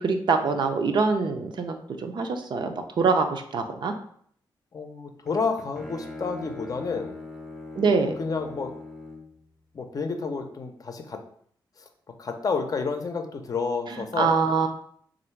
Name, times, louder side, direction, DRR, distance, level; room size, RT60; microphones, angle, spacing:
voice 1, 0.0-3.9 7.8-8.1 14.2-14.7, right 4 dB, 60° right, 5 dB, 0.5 m, -24 dB
voice 2, 4.7-7.2 8.2-8.7 9.7-11.2 11.8-11.9 12.2-14.4, left 4 dB, 45° left, 6 dB, 0.6 m, -30 dB
Bowed string instrument, 5.3-9.4, left 3 dB, ahead, 0.6 m, -40 dB
3.4 x 2.6 x 4.4 m, 0.62 s
cardioid pair, 100°, 9 cm